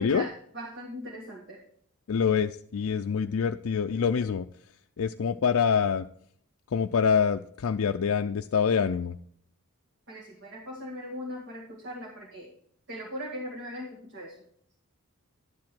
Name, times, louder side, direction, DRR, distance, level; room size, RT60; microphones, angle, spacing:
voice 1, 0.0-1.6 10.1-12.5 12.9-14.4, equal, 55° right, -2 dB, 2.0 m, -39 dB
voice 2, 2.1-4.5 5.0-6.1 6.7-9.2, left 6 dB, 65° left, 7 dB, 0.4 m, -25 dB
11.5 x 7.6 x 4.4 m, 0.64 s
head